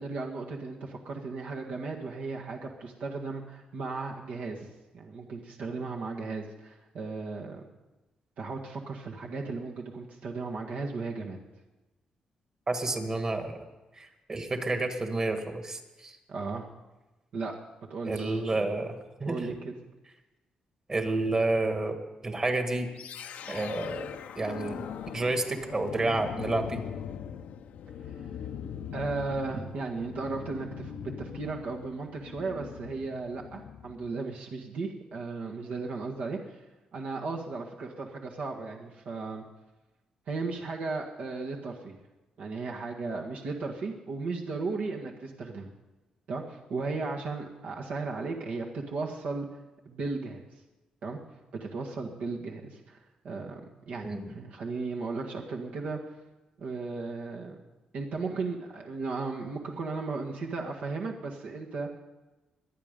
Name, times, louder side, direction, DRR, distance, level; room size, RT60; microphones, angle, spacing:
voice 1, 0.0-4.7 4.9-7.7 8.4-11.4 16.3-16.7 17.3-17.5 17.9-18.7 19.2-19.7 28.9-36.6 36.9-39.4 40.3-42.0 42.4-45.7 46.3-49.5 49.8-50.4 51.0-51.2 51.5-53.0 53.2-53.6 53.9-56.0 56.6-57.6 57.9-61.9, right 3 dB, 70° right, 0 dB, 1.7 m, -35 dB
voice 2, 12.7-13.6 14.0-16.2 18.0-19.4 20.9-22.0 22.2-22.9 23.5-24.1 24.4-24.8 25.1-26.8 54.0-54.3, right 2 dB, 25° right, 6 dB, 1.7 m, -30 dB
sound 1, 23.0-34.1, left 8 dB, 80° left, 0.8 m, -41 dB
23.5 x 9.0 x 5.3 m, 1.1 s
cardioid pair, 125°, 2 cm